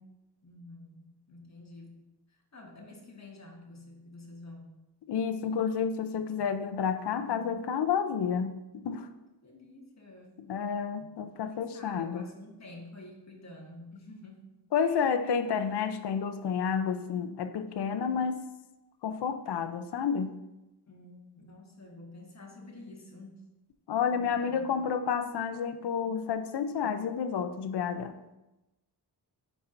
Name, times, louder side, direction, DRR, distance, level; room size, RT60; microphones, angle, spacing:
voice 1, 0.4-2.0 2.3-4.7 8.8-10.4 11.5-14.4 20.9-23.4 24.4-24.7, left 2 dB, 40° left, 0 dB, 1.3 m, -49 dB
voice 2, 5.1-9.1 10.5-12.3 14.7-18.4 19.0-20.3 23.9-28.2, left 7 dB, 75° left, 9 dB, 0.6 m, -30 dB
9.9 x 4.2 x 2.6 m, 0.97 s
wide cardioid pair, 130°, 41 cm